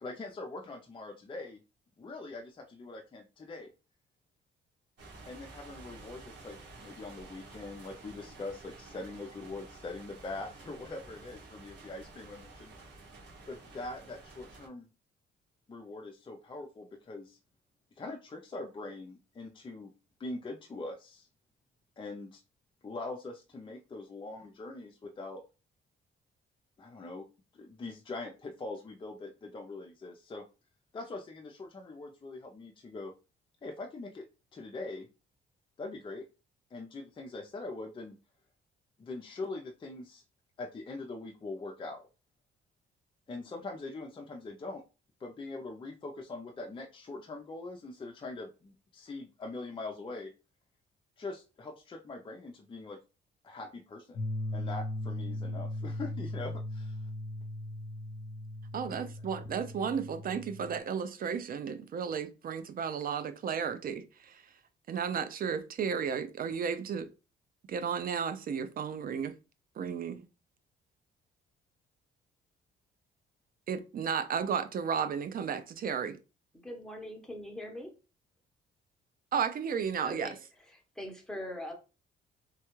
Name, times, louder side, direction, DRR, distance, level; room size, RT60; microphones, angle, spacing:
voice 1, 0.0-1.6 2.0-3.7 5.3-12.7 13.5-14.9 15.7-17.4 18.0-19.9 20.2-21.3 22.0-22.4 22.8-25.4 26.8-27.3 27.5-30.4 30.9-33.1 33.6-34.3 34.5-35.1 35.8-36.3 36.7-38.2 39.0-40.2 40.6-42.0 43.3-44.8 45.2-50.3 51.2-53.0 53.4-54.2 54.5-57.0, left 2 dB, 25° left, 0.5 m, -42 dB
sound 1, 5.0-14.7, right 3 dB, 65° right, 1.3 m, -51 dB
sound 2, 54.2-60.8, left 1 dB, 55° left, 0.7 m, -38 dB
voice 2, 58.7-64.4 64.9-67.1 67.7-69.3 69.8-70.2 73.7-76.2 79.3-80.3, right 7 dB, 45° right, 0.4 m, -33 dB
voice 3, 76.6-77.9 80.0-80.4 80.7-81.7, left 1 dB, 5° left, 1.0 m, -41 dB
3.1 x 2.3 x 3.0 m
cardioid pair, 90°, 20 cm